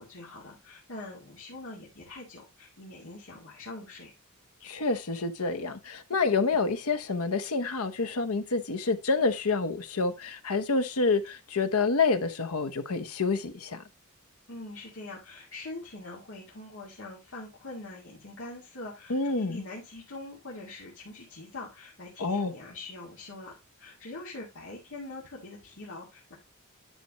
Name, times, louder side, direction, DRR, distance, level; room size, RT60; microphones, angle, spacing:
voice 1, 0.0-4.1 14.5-26.4, left 2 dB, 60° left, 2.3 m, -43 dB
voice 2, 4.6-13.8 19.1-19.6 22.2-22.5, left 4 dB, 80° left, 1.0 m, -28 dB
10.0 x 5.9 x 3.0 m
head